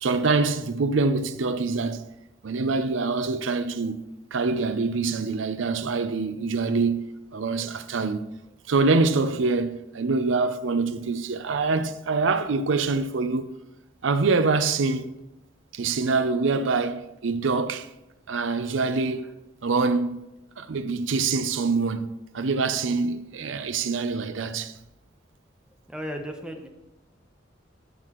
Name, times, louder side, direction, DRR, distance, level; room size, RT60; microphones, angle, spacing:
voice 1, 0.0-2.1 2.4-4.0 4.3-7.0 7.3-8.2 8.7-13.5 14.0-15.1 15.7-17.9 18.3-19.2 19.6-20.3 20.6-22.1 22.3-24.7, right 4 dB, 80° right, 0.6 m, -25 dB
voice 2, 25.9-26.7, equal, 5° right, 0.8 m, -35 dB
13.5 x 5.9 x 3.0 m
head